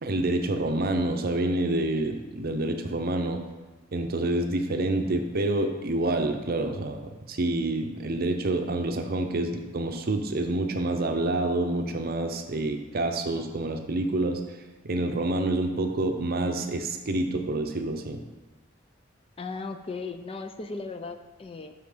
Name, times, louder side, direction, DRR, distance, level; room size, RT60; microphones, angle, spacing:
voice 1, 0.0-3.4 3.9-14.4 14.8-18.2, right 2 dB, 50° right, 6 dB, 0.7 m, -27 dB
voice 2, 19.4-21.7, left 3 dB, 30° left, 8 dB, 0.4 m, -36 dB
6.3 x 5.7 x 5.0 m, 1.2 s
head